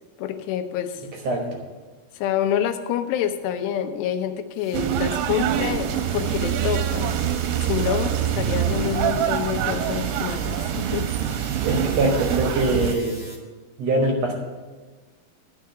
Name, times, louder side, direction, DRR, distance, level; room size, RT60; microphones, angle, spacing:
voice 1, 0.2-1.0 2.1-7.2 7.6-11.1, left 10 dB, 85° left, 7 dB, 2.9 m, -27 dB
sound 1, 4.5-13.4, equal, 15° right, 0.9 m, -43 dB
sound 2, 4.7-12.9, right 10 dB, 90° right, 2.8 m, -25 dB
voice 2, 11.6-13.2 13.8-14.3, right 1 dB, 70° right, 1 dB, 1.6 m, -22 dB
13.0 x 4.7 x 7.9 m, 1.3 s
omnidirectional pair, 4.8 m